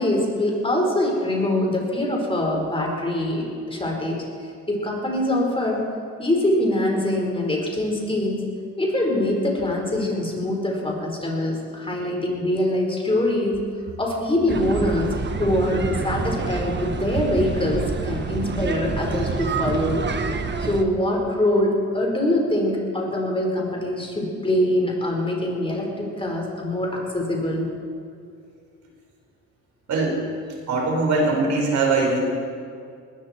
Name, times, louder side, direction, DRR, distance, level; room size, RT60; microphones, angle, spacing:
voice 1, 0.0-4.2 4.7-5.8 6.2-8.4 8.8-13.6 14.0-15.1 15.4-20.0 20.6-27.7, left 1 dB, 20° left, 0 dB, 4.5 m, -23 dB
sound 1, 14.5-20.8, right 5 dB, 35° right, 1.3 m, -27 dB
voice 2, 29.9-30.2 30.7-32.2, right 3 dB, 70° right, -1 dB, 5.0 m, -21 dB
20.5 x 15.5 x 4.4 m, 2.3 s
cardioid pair, 90°, 30 cm